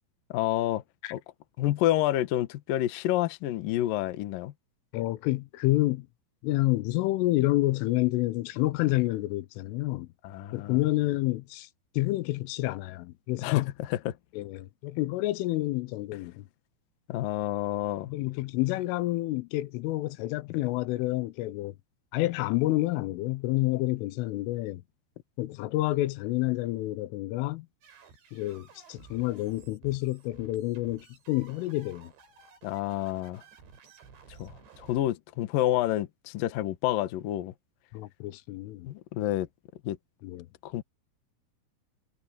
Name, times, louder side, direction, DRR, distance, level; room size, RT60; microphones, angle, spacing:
voice 1, 0.3-0.8 1.1-1.2 1.6-4.5 10.2-10.8 13.4-13.6 14.1-14.2 17.1-18.1 32.6-33.4 34.4-37.5 38.8-39.5 39.8-40.0 40.6-40.8, left 14 dB, 70° left, 2.2 m, -29 dB
voice 2, 4.9-6.1 6.4-10.1 10.5-11.7 11.9-13.7 14.3-16.5 18.1-21.8 22.1-24.8 25.4-27.7 28.3-32.1 37.9-38.9 40.2-40.5, left 18 dB, 85° left, 3.4 m, -29 dB
sound 1, 27.8-35.0, right 5 dB, 65° right, 6.8 m, -54 dB
omnidirectional pair, 5.6 m